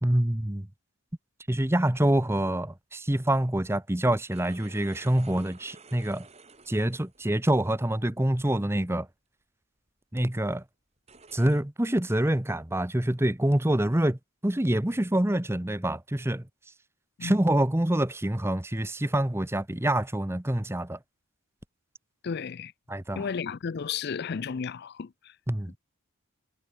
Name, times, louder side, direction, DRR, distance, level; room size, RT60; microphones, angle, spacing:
voice 1, 0.0-0.7 1.5-6.3 6.7-9.1 10.1-10.6 11.3-16.4 17.2-21.0 22.9-23.3 25.5-25.8, right 1 dB, 10° right, 0.9 m, -26 dB
sound 1, 4.3-7.4 8.1-8.4 9.0-9.1 9.9-10.0 11.0-11.6, right 4 dB, 30° right, 4.6 m, -52 dB
voice 2, 22.2-22.7 23.2-25.3, left 6 dB, 45° left, 0.4 m, -33 dB
head